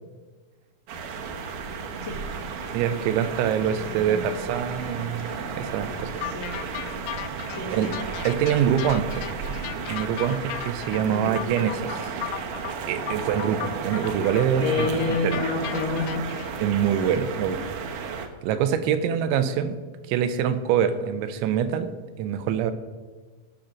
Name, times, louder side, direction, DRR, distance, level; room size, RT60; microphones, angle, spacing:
sound 1, 0.9-18.3, right 5 dB, 70° right, 2.1 m, -33 dB
voice 1, 1.7-2.2 3.7-4.2 6.2-6.7 7.5-7.9 10.9-11.4 14.6-16.3 17.0-17.1, left 3 dB, 75° left, -1 dB, 1.5 m, -30 dB
voice 2, 2.7-5.3 5.6-6.1 7.7-7.9 8.3-9.3 9.9-12.0 12.9-14.9 15.2-15.4 16.6-17.6 18.0-19.8 20.1-21.9 22.2-22.7, right 8 dB, 85° right, 10 dB, 3.1 m, -25 dB
sound 2, 6.2-16.5, left 14 dB, 90° left, 3.0 m, -36 dB
18.0 x 6.6 x 5.9 m, 1.4 s
omnidirectional pair, 5.3 m